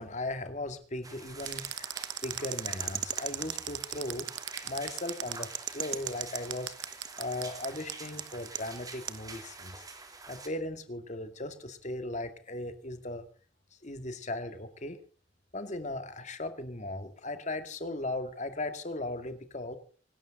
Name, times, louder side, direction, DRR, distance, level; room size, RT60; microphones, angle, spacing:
voice 1, 0.0-1.9 2.2-4.3 4.6-6.7 7.2-9.9 10.3-13.3 13.8-15.0 15.5-19.8, left 2 dB, 40° left, 9 dB, 2.1 m, -37 dB
sound 1, 1.0-10.5, right 3 dB, 20° right, 3.0 m, -47 dB
sound 2, 1.4-9.2, right 12 dB, 75° right, 1.2 m, -36 dB
26.0 x 12.5 x 3.8 m, 0.39 s
head